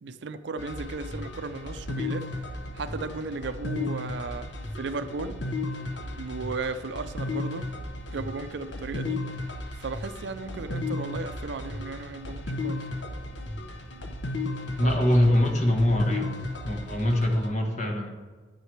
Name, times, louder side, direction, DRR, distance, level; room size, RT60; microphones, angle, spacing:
voice 1, 0.0-2.3 2.7-5.4 6.0-7.7 8.1-9.2 9.7-12.9 14.8-15.0, right 4 dB, 65° right, 12 dB, 0.5 m, -35 dB
sound 1, 0.6-17.5, left 2 dB, 70° left, 0.8 m, -35 dB
voice 2, 14.8-16.4 16.6-18.1, left 1 dB, 40° left, 2 dB, 1.2 m, -23 dB
9.6 x 8.2 x 3.2 m, 1.4 s
head